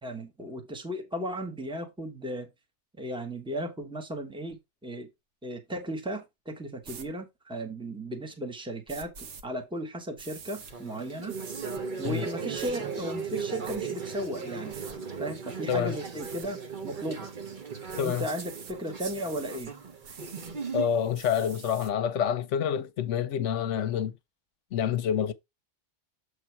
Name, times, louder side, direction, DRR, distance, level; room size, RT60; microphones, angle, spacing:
voice 1, 0.0-2.5 3.0-5.1 5.4-11.4 12.0-14.8 15.2-17.3 18.0-19.7, right 1 dB, 5° right, 1.2 m, -36 dB
sound 1, 6.8-7.1 8.9-9.4 10.2-10.7 11.3-11.8 12.5-12.7 13.3-13.8 14.7-14.9 16.2-16.5 17.9-18.7 19.0-19.7 20.0-20.5 21.1-21.9, right 6 dB, 70° right, 1.2 m, -45 dB
sound 2, 10.6-21.1, right 5 dB, 45° right, 1.0 m, -37 dB
voice 2, 18.0-18.3 20.7-24.1 24.7-25.3, left 8 dB, 75° left, 1.0 m, -27 dB
7.5 x 3.4 x 4.6 m
omnidirectional pair, 1.3 m